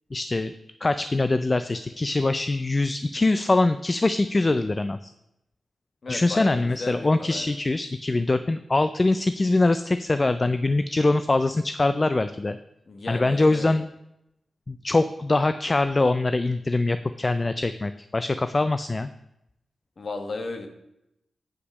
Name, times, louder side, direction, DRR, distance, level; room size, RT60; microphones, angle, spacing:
voice 1, 0.1-0.5 0.8-5.1 6.1-12.6 13.1-13.9 14.7-19.1, left 2 dB, 30° left, 11 dB, 0.3 m, -23 dB
voice 2, 6.0-7.5 12.9-13.7 20.0-20.7, left 3 dB, 50° left, 5 dB, 1.2 m, -35 dB
8.2 x 5.7 x 5.3 m, 0.85 s
wide cardioid pair, 100°, 0 cm